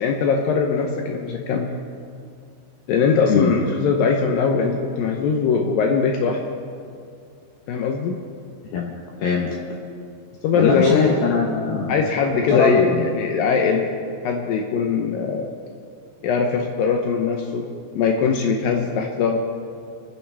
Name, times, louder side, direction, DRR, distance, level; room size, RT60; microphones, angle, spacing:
voice 1, 0.0-1.7 2.9-6.4 7.7-8.2 10.4-11.1 11.9-13.9 14.2-15.5 16.2-17.7 18.0-19.4, left 5 dB, 90° left, 2 dB, 2.0 m, -21 dB
voice 2, 9.2-9.6 10.5-12.1 12.5-13.1, left 5 dB, 70° left, -2 dB, 2.6 m, -21 dB
29.0 x 9.7 x 3.4 m, 2.3 s
omnidirectional pair, 5.3 m